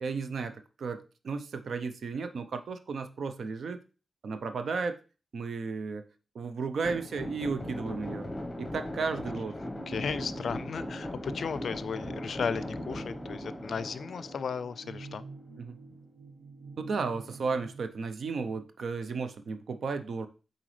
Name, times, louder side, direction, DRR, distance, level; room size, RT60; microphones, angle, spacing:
voice 1, 0.0-3.8 4.2-5.0 5.3-6.1 6.3-8.3 8.6-9.5 15.6-15.8 16.8-20.3, right 4 dB, 75° right, 9 dB, 0.5 m, -34 dB
sound 1, 6.8-15.1, left 1 dB, 15° left, 1.0 m, -39 dB
sound 2, 9.8-17.9, right 3 dB, 90° right, 1.4 m, -47 dB
voice 2, 9.9-15.2, left 6 dB, 75° left, 16 dB, 0.4 m, -35 dB
7.8 x 4.0 x 3.2 m, 0.34 s
wide cardioid pair, 120°, 0 cm